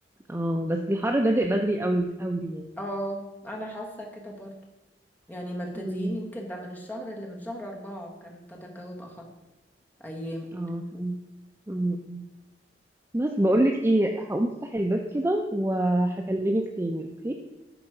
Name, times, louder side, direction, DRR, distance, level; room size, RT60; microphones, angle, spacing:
voice 1, 0.3-2.7 5.8-6.2 10.5-11.2 11.7-12.2 13.1-17.3, right 1 dB, 15° right, 3 dB, 0.5 m, -26 dB
voice 2, 2.8-4.5 5.3-9.3 10.0-10.5, equal, 10° left, -1 dB, 1.4 m, -36 dB
11.0 x 4.2 x 4.9 m, 1.0 s
head